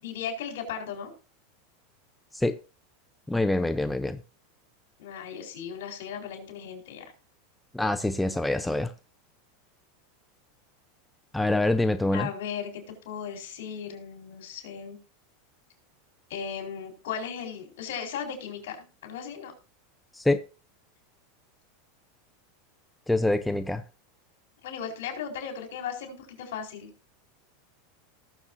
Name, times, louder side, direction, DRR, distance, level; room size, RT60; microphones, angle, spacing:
voice 1, 0.0-1.1 5.0-7.1 12.1-15.0 16.3-18.8 19.0-19.5 24.6-26.9, left 7 dB, 75° left, 4.2 m, -36 dB
voice 2, 3.3-4.2 7.7-8.9 11.3-12.3 20.2-20.4 23.1-23.8, left 2 dB, 5° left, 0.7 m, -25 dB
19.0 x 7.2 x 2.7 m
supercardioid pair, 120°, 0 cm